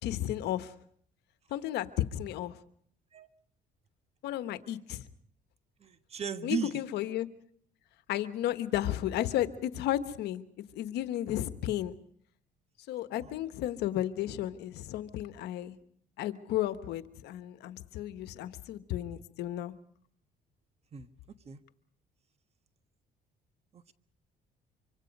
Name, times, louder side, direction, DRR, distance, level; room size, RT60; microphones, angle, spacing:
voice 1, 0.0-0.7 1.5-2.6 4.2-5.0 6.4-7.3 8.1-10.4 10.7-11.9 12.9-15.7 16.2-19.7, left 13 dB, 80° left, 12 dB, 1.2 m, -33 dB
voice 2, 5.8-6.8 13.2-13.3 20.9-21.1 21.4-21.6 23.7-23.9, right 6 dB, 40° right, 11 dB, 1.4 m, -36 dB
25.0 x 25.0 x 5.4 m, 0.63 s
cardioid pair, 110°, 17 cm